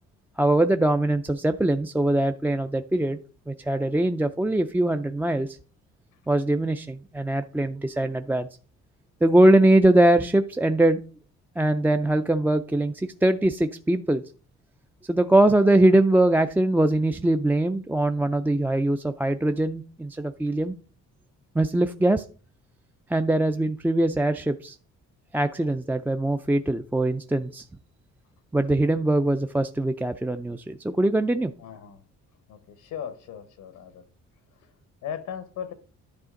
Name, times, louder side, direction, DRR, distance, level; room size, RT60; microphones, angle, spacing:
voice 1, 0.4-3.2 3.5-5.6 6.3-8.5 9.2-11.0 11.6-14.2 15.1-20.7 21.5-22.2 23.1-24.8 25.3-27.7 28.5-31.5, right 1 dB, 5° right, 0.4 m, -22 dB
voice 2, 31.6-32.0 32.5-34.0 35.0-35.7, left 8 dB, 90° left, 1.2 m, -37 dB
11.0 x 5.0 x 3.8 m
cardioid pair, 90°, 30 cm